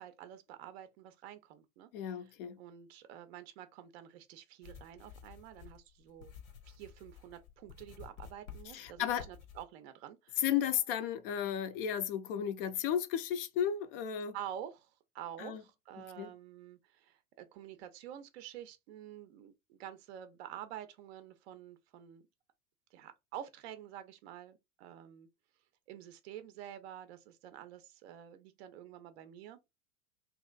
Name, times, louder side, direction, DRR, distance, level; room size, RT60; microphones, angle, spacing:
voice 1, 0.0-6.4 6.6-10.4 14.3-22.3 22.9-25.3 25.9-29.6, right 10 dB, 50° right, 0.5 m, -49 dB
voice 2, 1.9-2.6 8.7-9.3 10.4-14.4 15.4-15.6 16.2-16.3, left 9 dB, 45° left, 0.4 m, -34 dB
sound 1, 4.6-9.6, left 7 dB, 75° left, 0.8 m, -52 dB
2.9 x 2.4 x 2.2 m
figure-of-eight pair, 85°, 42 cm